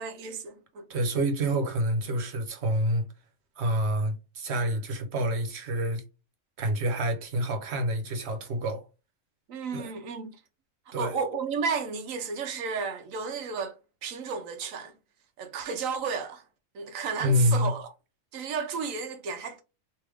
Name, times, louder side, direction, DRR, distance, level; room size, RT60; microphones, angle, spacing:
voice 1, 0.0-0.8 9.5-10.3 11.0-13.8 14.0-14.9 15.4-16.4 16.7-17.9 18.3-19.6, right 5 dB, 85° right, 1.1 m, -33 dB
voice 2, 0.9-3.1 3.6-6.0 6.6-8.8 9.7-9.9 10.9-11.1 17.2-17.7, equal, 60° right, 1.1 m, -27 dB
3.3 x 2.7 x 3.4 m
omnidirectional pair, 1.3 m